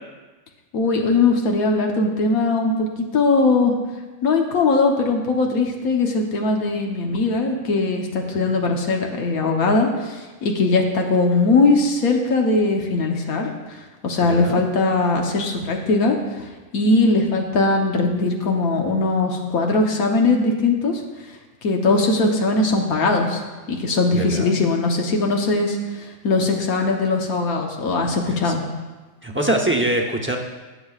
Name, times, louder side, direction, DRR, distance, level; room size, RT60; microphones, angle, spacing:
voice 1, 0.7-2.9 3.1-3.7 4.2-16.4 16.7-21.2 21.6-23.4 23.7-28.6, left 3 dB, 90° left, 1 dB, 1.5 m, -20 dB
voice 2, 14.3-14.6 24.1-24.5 28.4-28.5 29.2-30.4, right 1 dB, 10° right, 1 dB, 0.7 m, -23 dB
19.5 x 7.1 x 2.4 m, 1.2 s
omnidirectional pair, 1.5 m